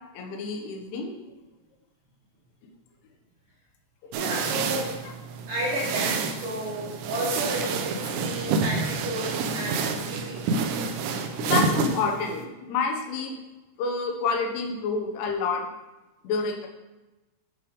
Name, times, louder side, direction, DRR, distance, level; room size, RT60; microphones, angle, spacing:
voice 1, 0.1-1.3 4.0-4.1 11.1-13.4 13.8-15.7 16.2-16.7, left 4 dB, 85° left, 2 dB, 3.4 m, -29 dB
voice 2, 4.1-4.9 5.5-10.5, equal, 65° right, -7 dB, 2.3 m, -32 dB
sound 1, 4.1-12.4, right 5 dB, 85° right, 2.4 m, -28 dB
10.0 x 3.4 x 5.3 m, 1.1 s
omnidirectional pair, 5.5 m